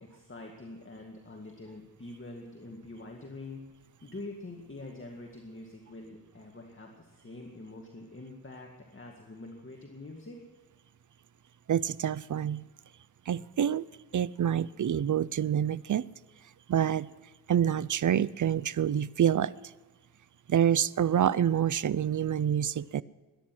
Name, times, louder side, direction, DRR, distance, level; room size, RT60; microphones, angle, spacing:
voice 1, 0.0-3.6 4.0-10.4, left 2 dB, 35° left, 1 dB, 2.1 m, -45 dB
voice 2, 11.7-12.6 13.3-13.9 14.1-16.1 16.7-17.1 17.5-19.5 20.5-23.0, right 9 dB, 55° right, 20 dB, 0.5 m, -27 dB
22.5 x 10.5 x 6.1 m, 1.4 s
cardioid pair, 65°, 36 cm